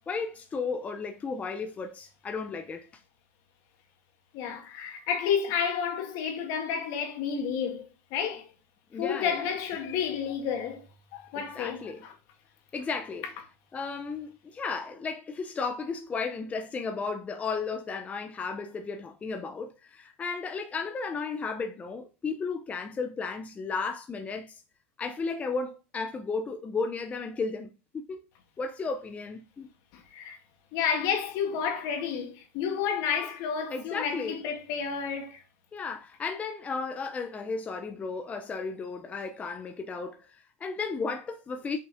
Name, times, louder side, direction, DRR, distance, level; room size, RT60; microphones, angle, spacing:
voice 1, 0.1-2.9 8.9-9.5 11.3-12.0 12.7-13.3 13.7-24.6 25.0-27.7 28.1-28.2 28.6-29.7 33.7-34.4 35.7-41.8, left 4 dB, 20° left, 0.8 m, -34 dB
voice 2, 4.3-8.5 9.0-10.8 11.1-12.1 29.9-30.4 30.7-35.4, left 7 dB, 55° left, 2.2 m, -31 dB
6.6 x 5.6 x 3.6 m
supercardioid pair, 120°, 7 cm